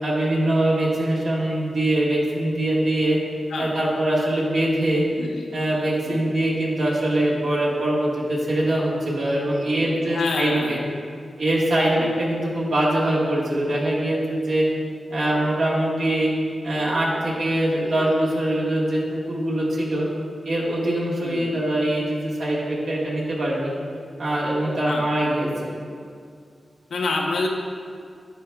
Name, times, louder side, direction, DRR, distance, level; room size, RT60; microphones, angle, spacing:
voice 1, 0.0-3.2 3.6-5.0 5.5-10.8 11.4-14.7 15.1-16.3 16.6-20.1 20.4-23.7 24.2-25.7, right 1 dB, 85° right, -6 dB, 1.5 m, -23 dB
voice 2, 9.8-10.8 11.9-12.1 21.2-21.5 24.8-25.1 26.9-27.5, left 3 dB, 85° left, 1 dB, 0.7 m, -28 dB
11.0 x 4.8 x 2.3 m, 2.3 s
cardioid pair, 65°, 0 cm